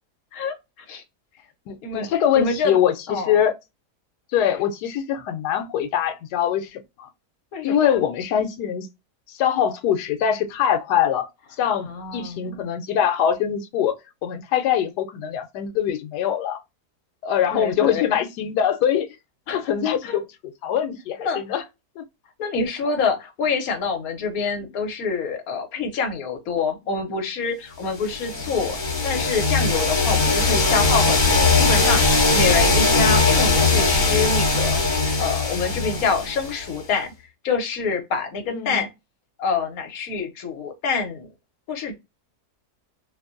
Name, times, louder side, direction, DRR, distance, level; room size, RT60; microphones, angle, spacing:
voice 1, 1.7-3.6 4.3-7.1 7.6-8.9 9.3-11.3 11.6-16.6 17.2-19.1 19.5-20.3 20.6-21.6 22.0-22.1 26.9-27.0 28.5-28.6 38.5-38.9, left 9 dB, 85° left, 1.1 m, -23 dB
voice 2, 2.3-2.8 3.1-3.3 7.5-7.9 11.8-12.7 17.5-18.0 19.5-19.7 20.0-20.2 21.2-21.4 22.4-34.8 35.2-37.1 37.4-38.9 39.4-41.3 41.7-41.9, left 5 dB, 70° left, 1.2 m, -26 dB
sound 1, 28.1-36.8, left 3 dB, 35° left, 1.1 m, -20 dB
2.9 x 2.6 x 2.4 m
omnidirectional pair, 1.7 m